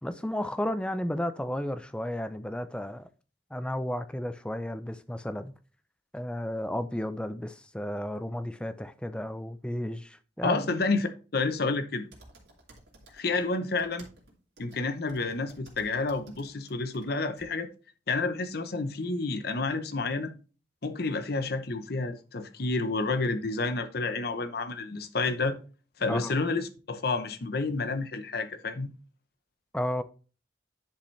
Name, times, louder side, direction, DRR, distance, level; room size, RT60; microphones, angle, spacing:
voice 1, 0.0-3.1 3.5-5.5 6.1-10.6 26.1-26.3 29.7-30.0, left 1 dB, 5° left, 0.5 m, -33 dB
voice 2, 10.4-12.1 13.1-14.0 14.6-17.7 18.1-20.3 20.8-25.5 26.0-28.9, left 3 dB, 55° left, 0.8 m, -30 dB
sound 1, 12.1-13.4 13.7-17.1 17.4-17.5, right 2 dB, 65° right, 2.6 m, -54 dB
10.0 x 5.2 x 3.2 m
head